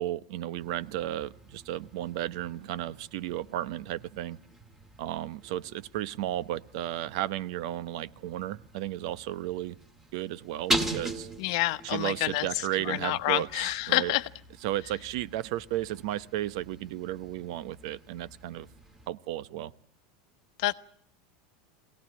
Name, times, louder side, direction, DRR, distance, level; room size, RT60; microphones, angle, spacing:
voice 1, 0.0-4.4 5.0-9.8 10.1-11.3 11.8-14.1 14.6-18.7 19.1-19.7, right 13 dB, 60° right, 17 dB, 0.9 m, -34 dB
sound 1, 0.6-19.1, right 1 dB, 10° right, 2.0 m, -41 dB
voice 2, 11.4-12.5 12.9-14.3 20.6-20.7, left 18 dB, 60° left, 13 dB, 1.0 m, -28 dB
23.0 x 18.0 x 8.6 m, 0.64 s
supercardioid pair, 160°, 4 cm